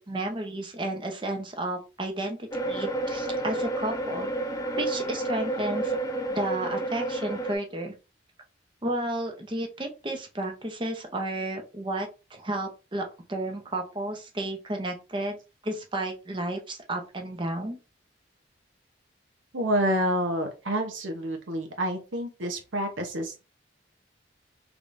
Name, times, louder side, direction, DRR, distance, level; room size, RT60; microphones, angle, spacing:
voice 1, 0.0-4.3 4.8-6.0 6.3-7.9 8.8-15.4 15.6-17.8, right 1 dB, 25° right, 3 dB, 0.7 m, -32 dB
sound 1, 2.5-7.6, right 2 dB, 20° left, 0.4 m, -30 dB
voice 2, 19.5-23.5, equal, 90° right, 3 dB, 0.9 m, -28 dB
3.4 x 3.1 x 2.6 m, 0.30 s
head